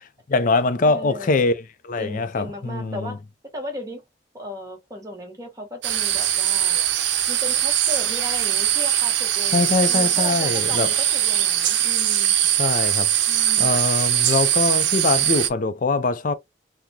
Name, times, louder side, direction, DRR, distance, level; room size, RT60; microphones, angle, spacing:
voice 1, 0.3-1.5 1.8-3.2 9.5-10.9 12.6-13.1 13.6-16.3, left 3 dB, 45° left, 0.5 m, -22 dB
voice 2, 0.8-1.5 2.0-3.2 3.5-4.0 4.3-6.8 7.3-12.3 13.3-13.7, left 1 dB, 20° right, 1.1 m, -36 dB
sound 1, 5.8-15.5, right 11 dB, 85° right, 0.5 m, -21 dB
3.6 x 2.1 x 2.8 m
head